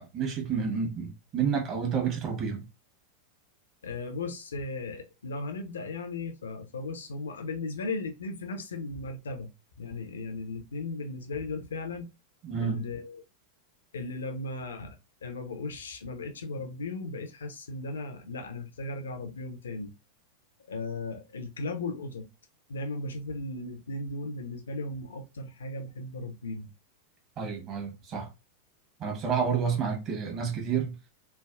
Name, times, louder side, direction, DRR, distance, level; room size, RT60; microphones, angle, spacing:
voice 1, 0.0-2.6 12.4-12.8 27.4-28.3 29.0-31.0, right 6 dB, 35° right, 1.1 m, -30 dB
voice 2, 3.8-9.5 9.8-12.1 12.6-13.2 13.9-19.9 20.7-22.3 22.7-26.7, left 3 dB, 65° left, 0.6 m, -36 dB
3.3 x 2.3 x 2.3 m
figure-of-eight pair, 90°, 0 cm